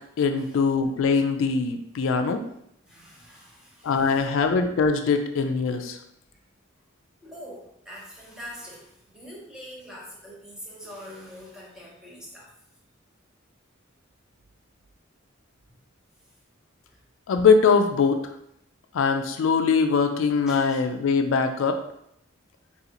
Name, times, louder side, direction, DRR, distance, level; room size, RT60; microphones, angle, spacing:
voice 1, 0.2-2.4 3.8-6.0 17.3-18.2 18.9-21.8, left 5 dB, 75° left, 6 dB, 0.3 m, -22 dB
voice 2, 2.9-4.4 6.3-6.4 7.2-12.5 16.9-17.0 20.5-20.8, equal, 5° right, -4 dB, 0.8 m, -44 dB
3.8 x 2.4 x 2.9 m, 0.74 s
head